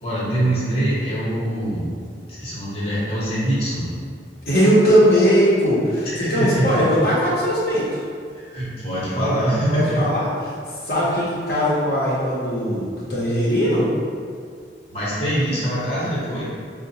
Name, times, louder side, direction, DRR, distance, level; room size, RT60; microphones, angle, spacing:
voice 1, 0.0-1.9 2.4-3.9 6.0-6.8 8.3-10.0 11.0-11.2 14.9-16.4, right 1 dB, 35° left, -8 dB, 0.9 m, -23 dB
voice 2, 4.5-8.0 9.7-10.5 10.8-13.9, equal, 60° left, -8 dB, 0.7 m, -19 dB
4.7 x 2.1 x 2.7 m, 2.1 s
head